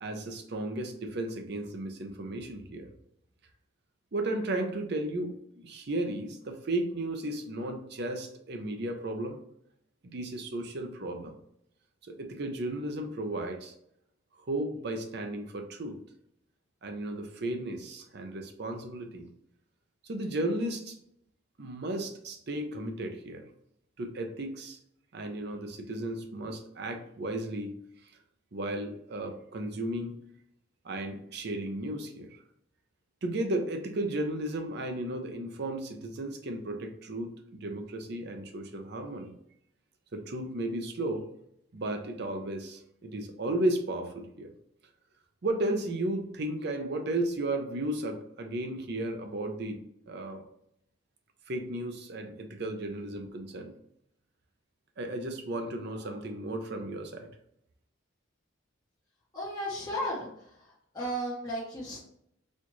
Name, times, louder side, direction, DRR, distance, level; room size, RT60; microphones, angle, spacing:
voice 1, 0.0-2.9 4.1-9.4 10.0-11.3 12.0-13.7 14.5-16.0 16.8-19.3 20.0-21.0 21.6-23.4 24.0-24.8 25.1-27.8 28.5-30.2 30.8-32.3 33.2-39.3 40.1-41.2 41.7-44.5 45.4-49.8 50.1-50.4 51.5-53.7 55.0-57.3, right 1 dB, 55° right, 5 dB, 0.6 m, -34 dB
voice 2, 59.3-62.0, equal, 20° left, -7 dB, 0.8 m, -35 dB
4.2 x 2.4 x 3.0 m, 0.74 s
head